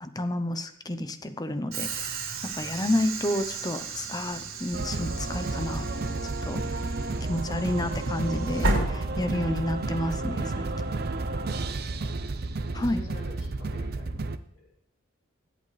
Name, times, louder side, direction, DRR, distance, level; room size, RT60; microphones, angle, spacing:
voice 1, 0.0-2.1 2.4-5.9 6.2-6.8 7.3-10.7 12.7-13.0, left 1 dB, 20° left, 9 dB, 0.7 m, -30 dB
Train / Sliding door, 1.7-9.7, right 2 dB, 85° right, 3.7 m, -34 dB
sound 1, 4.7-14.4, right 2 dB, 50° right, 0.6 m, -31 dB
voice 2, 11.6-12.1 12.7-14.1 14.5-14.6, left 1 dB, 70° left, -5 dB, 5.2 m, -48 dB
21.5 x 8.2 x 3.3 m, 0.67 s
head